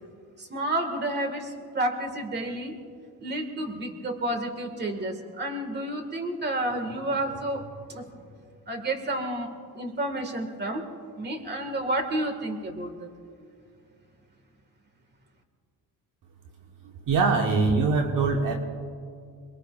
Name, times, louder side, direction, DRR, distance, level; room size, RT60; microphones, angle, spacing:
voice 1, 0.4-2.8 3.2-8.1 8.7-9.5 9.8-10.9 11.2-13.1, right 1 dB, 25° right, 5 dB, 1.9 m, -30 dB
voice 2, 17.1-18.6, right 4 dB, 55° right, 2 dB, 1.3 m, -22 dB
28.5 x 20.5 x 2.4 m, 2.3 s
cardioid pair, 140°, 37 cm